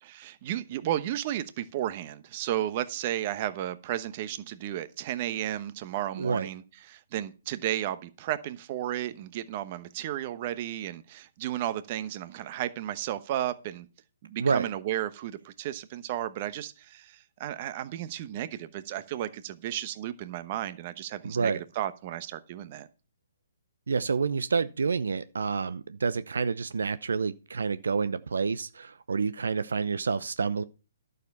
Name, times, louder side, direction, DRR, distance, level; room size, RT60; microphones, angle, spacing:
voice 1, 0.0-13.9 14.2-22.9, right 12 dB, 40° right, 1.0 m, -33 dB
voice 2, 6.2-6.5 14.4-14.7 21.2-21.6 23.9-30.6, right 5 dB, 75° right, 0.6 m, -28 dB
11.5 x 6.8 x 5.4 m
figure-of-eight pair, 135°, 0 cm